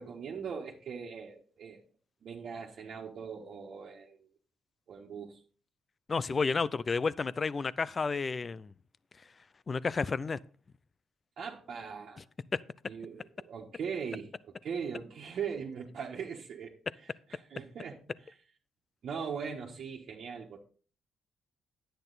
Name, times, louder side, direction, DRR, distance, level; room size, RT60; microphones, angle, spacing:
voice 1, 0.0-1.8 2.2-4.3 4.9-5.4 11.4-12.3 12.9-18.4 19.0-20.6, right 6 dB, 60° right, 1.5 m, -40 dB
voice 2, 6.1-8.7 9.7-10.4, left 4 dB, 35° left, 0.5 m, -31 dB
10.0 x 9.0 x 4.0 m
cardioid pair, 90°, 0 cm